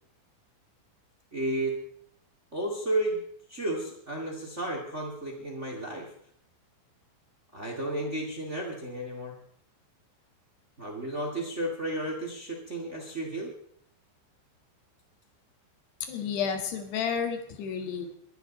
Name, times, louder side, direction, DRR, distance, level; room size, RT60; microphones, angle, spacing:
voice 1, 1.3-1.7 2.5-3.2 3.5-6.1 7.5-9.4 10.8-13.5, right 1 dB, 30° right, 1 dB, 1.3 m, -32 dB
voice 2, 16.1-18.2, left 6 dB, 65° left, 6 dB, 3.6 m, -31 dB
21.5 x 12.5 x 4.1 m, 0.64 s
omnidirectional pair, 5.5 m